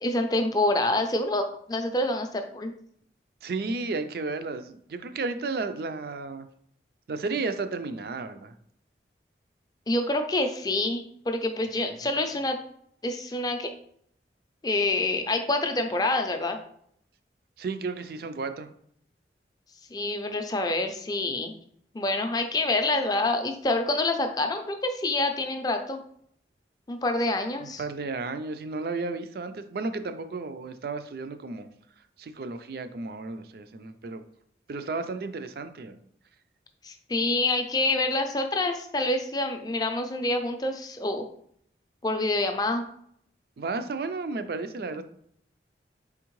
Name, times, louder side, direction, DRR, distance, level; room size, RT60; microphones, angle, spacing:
voice 1, 0.0-2.7 9.9-12.6 13.0-13.7 14.6-16.6 19.9-21.5 21.9-26.0 26.9-27.8 36.8-41.2 42.0-42.8, left 2 dB, 20° left, 6 dB, 0.4 m, -27 dB
voice 2, 3.4-6.5 7.1-8.5 12.0-12.1 17.6-18.7 27.6-31.7 32.2-34.2 34.7-36.0 43.6-45.0, right 3 dB, 55° right, 10 dB, 0.4 m, -33 dB
4.3 x 3.5 x 3.0 m, 0.66 s
head